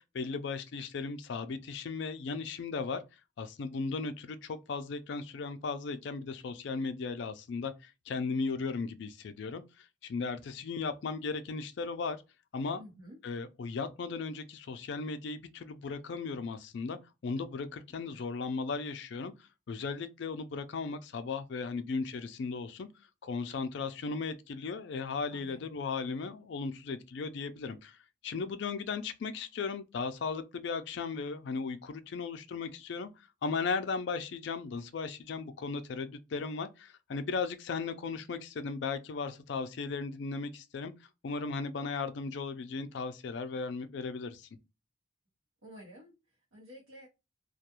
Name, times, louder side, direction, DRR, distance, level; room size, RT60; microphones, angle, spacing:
voice 1, 0.0-3.0 3.4-12.2 12.5-12.8 13.2-17.0 17.2-19.3 19.7-22.9 23.2-28.0 28.2-33.1 33.4-40.9 41.2-44.5, left 4 dB, 55° left, 0.3 m, -36 dB
voice 2, 12.7-13.2 25.3-25.6 33.7-33.8 45.6-47.1, equal, 85° right, 0.9 m, -52 dB
2.3 x 2.2 x 2.8 m
head